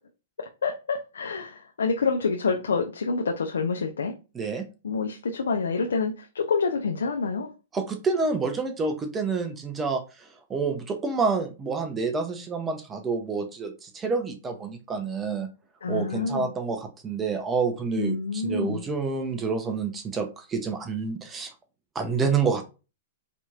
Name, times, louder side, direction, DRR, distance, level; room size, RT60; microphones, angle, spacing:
voice 1, 0.4-4.1 4.8-7.5 15.8-16.5 18.0-18.8, left 4 dB, 85° left, 0.5 m, -27 dB
voice 2, 7.7-15.5 15.9-21.5 21.9-22.7, right 4 dB, 20° right, 0.6 m, -28 dB
4.2 x 2.9 x 2.4 m
hypercardioid pair, 125°, 0 cm